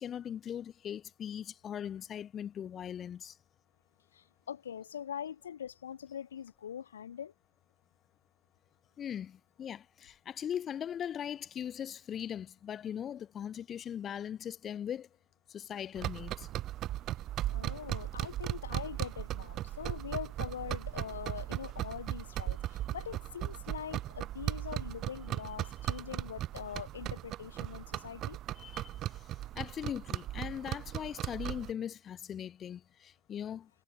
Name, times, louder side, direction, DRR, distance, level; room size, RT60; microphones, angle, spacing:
voice 1, 0.0-3.3 9.0-15.1 15.5-16.5 28.6-28.9 29.5-33.7, left 9 dB, 35° left, 0.8 m, -40 dB
voice 2, 4.1-7.3 17.5-28.4, left 8 dB, 80° left, 0.6 m, -43 dB
sound 1, 16.0-31.7, right 13 dB, 40° right, 0.5 m, -37 dB
hypercardioid pair, 90°, 0 cm